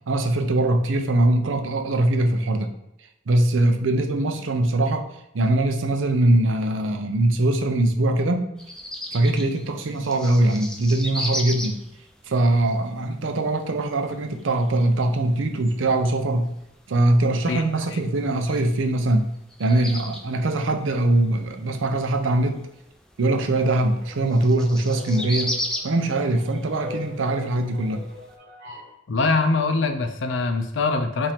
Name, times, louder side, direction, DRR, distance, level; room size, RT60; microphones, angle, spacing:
voice 1, 0.1-2.7 3.3-5.1 5.3-8.5 9.1-11.8 12.3-16.5 16.9-19.3 19.6-22.6 23.2-25.6 25.8-28.0, right 1 dB, 90° right, 6 dB, 0.6 m, -22 dB
sound 1, 8.6-28.3, left 1 dB, 5° left, 0.4 m, -37 dB
sound 2, 23.3-28.9, left 3 dB, 55° right, 1.2 m, -42 dB
voice 2, 29.1-31.3, left 3 dB, 80° left, 8 dB, 0.5 m, -23 dB
5.4 x 2.6 x 3.5 m, 0.86 s
head